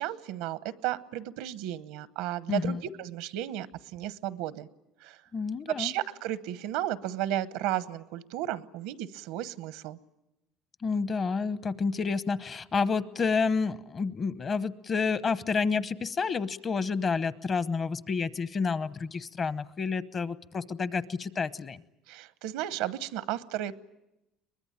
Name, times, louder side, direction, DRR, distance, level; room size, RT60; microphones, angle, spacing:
voice 1, 0.0-4.7 5.0-5.2 5.7-10.0 22.1-23.8, right 13 dB, 85° right, 15 dB, 0.9 m, -34 dB
voice 2, 2.5-2.8 5.3-5.9 10.8-21.8, left 5 dB, 35° left, 15 dB, 0.9 m, -29 dB
23.0 x 20.5 x 8.9 m, 0.93 s
cardioid pair, 110°, 0 cm